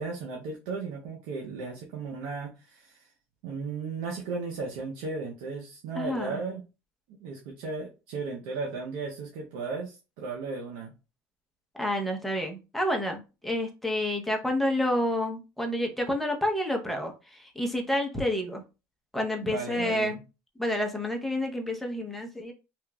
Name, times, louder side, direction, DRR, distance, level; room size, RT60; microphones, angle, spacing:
voice 1, 0.0-3.0 3.4-6.6 7.2-10.9 19.4-20.2, right 4 dB, 80° right, -1 dB, 0.6 m, -35 dB
voice 2, 5.9-6.4 11.8-18.6 19.1-20.2 20.6-22.5, left 1 dB, ahead, 2 dB, 0.7 m, -29 dB
2.9 x 2.4 x 2.2 m, 0.29 s
supercardioid pair, 100°, 6 cm